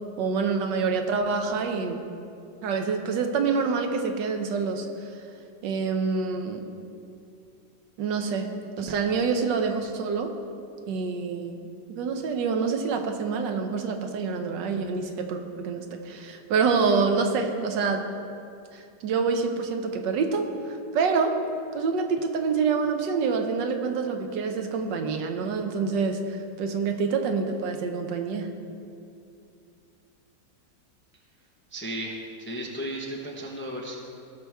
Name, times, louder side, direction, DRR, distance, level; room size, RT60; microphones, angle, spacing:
voice 1, 0.2-2.0 2.6-4.9 5.6-6.6 8.0-10.3 10.9-18.0 18.7-21.4 21.7-28.5, right 5 dB, 80° right, 5 dB, 1.4 m, -27 dB
voice 2, 31.7-32.1 32.4-34.0, right 1 dB, 10° left, -1 dB, 0.6 m, -34 dB
17.0 x 6.0 x 3.5 m, 2.6 s
omnidirectional pair, 1.9 m